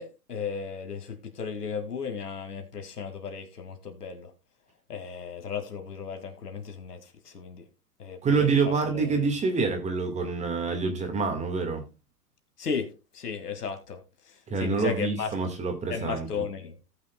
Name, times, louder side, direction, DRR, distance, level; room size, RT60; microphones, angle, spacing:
voice 1, 0.0-4.3 4.9-7.7 8.0-9.3 12.6-14.0 14.3-15.3 15.9-16.7, left 6 dB, 75° left, 2.3 m, -35 dB
voice 2, 8.2-11.8 14.5-16.3, right 4 dB, 15° right, 1.8 m, -26 dB
18.0 x 6.1 x 2.2 m
hypercardioid pair, 115°, 46 cm